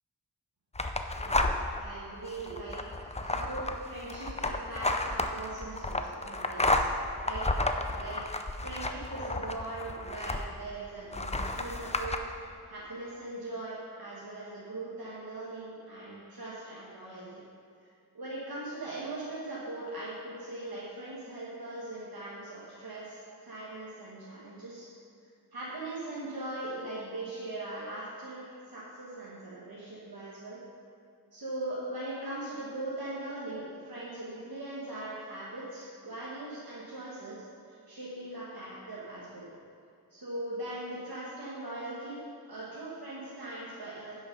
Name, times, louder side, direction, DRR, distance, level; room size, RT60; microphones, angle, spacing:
sound 1, 0.7-1.8 2.3-10.7 11.1-12.2, left 2 dB, 15° left, 0.5 m, -32 dB
voice 1, 1.1-1.5 1.8-7.5 7.9-8.2 8.6-12.2 12.7-17.4 18.1-24.9 25.5-30.6 31.3-39.5 40.1-44.2, right 2 dB, 70° right, -8 dB, 1.5 m, -40 dB
10.0 x 6.0 x 5.4 m, 2.4 s
wide cardioid pair, 55°, 38 cm